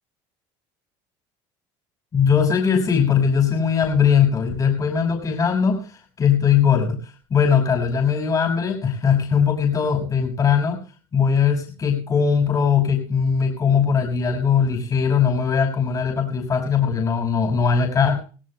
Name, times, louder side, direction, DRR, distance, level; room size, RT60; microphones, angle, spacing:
voice 1, 2.1-7.0 7.3-10.8 11.1-18.2, left 7 dB, 30° left, 1 dB, 5.9 m, -20 dB
27.0 x 17.0 x 2.2 m, 0.37 s
cardioid pair, 120°, 11 cm